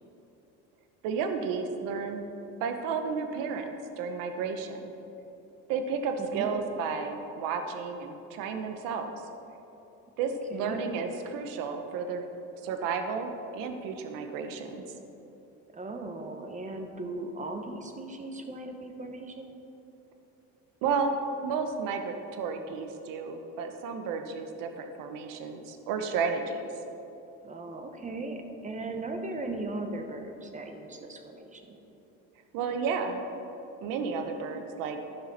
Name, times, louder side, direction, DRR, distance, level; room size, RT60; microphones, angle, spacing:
voice 1, 1.0-2.2 2.6-3.7 4.0-4.9 5.7-9.1 10.2-12.2 12.6-14.8 20.8-26.7 32.5-33.2 33.8-35.0, right 5 dB, 80° right, 6 dB, 0.8 m, -32 dB
voice 2, 6.2-6.5 10.5-10.8 15.7-19.5 27.4-31.8, right 2 dB, 25° right, 5 dB, 1.0 m, -38 dB
12.5 x 5.8 x 4.1 m, 3.0 s
supercardioid pair, 95°, 33 cm